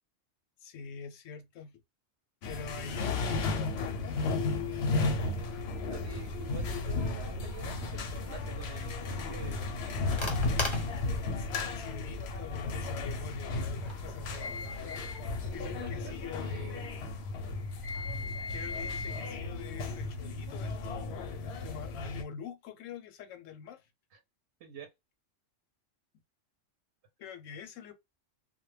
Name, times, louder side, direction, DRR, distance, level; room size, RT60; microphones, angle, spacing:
voice 1, 0.6-1.8 2.5-4.3 11.4-15.1 15.5-16.9 18.5-23.9 27.2-27.9, left 6 dB, 85° left, 1.0 m, -45 dB
sound 1, 2.4-22.2, left 3 dB, 65° left, 0.7 m, -34 dB
sound 2, 5.0-14.8, left 2 dB, 30° left, 0.7 m, -45 dB
voice 2, 5.9-10.0 15.8-16.8 24.1-24.2 24.6-24.9, right 7 dB, 65° right, 0.8 m, -48 dB
2.2 x 2.1 x 3.1 m
omnidirectional pair, 1.3 m